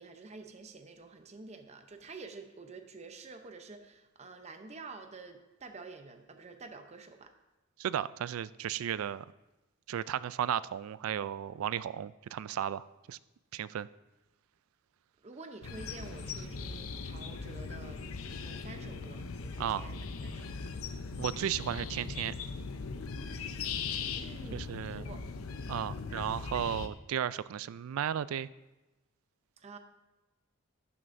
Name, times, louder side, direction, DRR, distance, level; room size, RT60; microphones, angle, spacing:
voice 1, 0.0-7.3 15.2-20.5 24.2-25.2 29.6-29.8, right 3 dB, 30° right, 6 dB, 0.7 m, -49 dB
voice 2, 7.8-9.2 9.9-13.2 13.5-13.9 19.6-19.9 21.2-22.3 24.5-25.1 25.7-28.5, right 9 dB, 80° right, 17 dB, 0.3 m, -34 dB
sound 1, 15.6-26.9, left 4 dB, 85° left, 0.6 m, -39 dB
12.0 x 9.3 x 2.6 m, 1.1 s
head